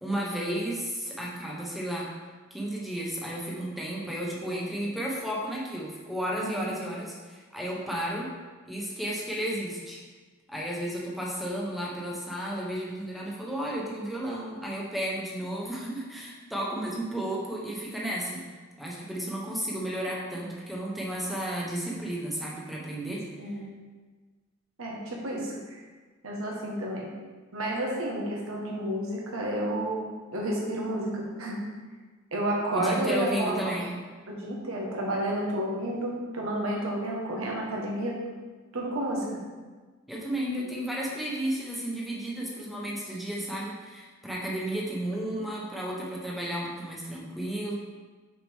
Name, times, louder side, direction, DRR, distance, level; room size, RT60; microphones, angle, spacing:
voice 1, 0.0-2.1 2.5-8.3 8.6-10.0 10.5-18.4 18.8-23.2 23.5-23.6 32.7-33.9 40.1-47.8, right 1 dB, ahead, -4 dB, 1.1 m, -33 dB
voice 2, 24.8-25.8 26.2-27.1 27.5-31.6 32.3-33.8 34.3-38.2 38.7-39.4, right 1 dB, 80° right, -2 dB, 1.5 m, -31 dB
6.2 x 4.8 x 3.6 m, 1.3 s
head